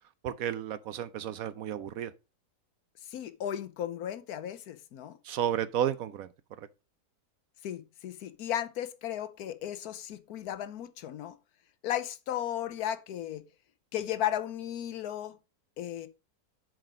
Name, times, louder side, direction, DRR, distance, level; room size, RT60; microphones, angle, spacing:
voice 1, 0.2-2.1 5.2-6.3 6.6-6.7, right 10 dB, 70° right, 1.0 m, -32 dB
voice 2, 3.0-5.2 7.6-11.4 11.8-13.4 13.9-15.4 15.8-16.1, left 10 dB, 75° left, 1.2 m, -35 dB
7.6 x 5.0 x 4.9 m
omnidirectional pair, 1.7 m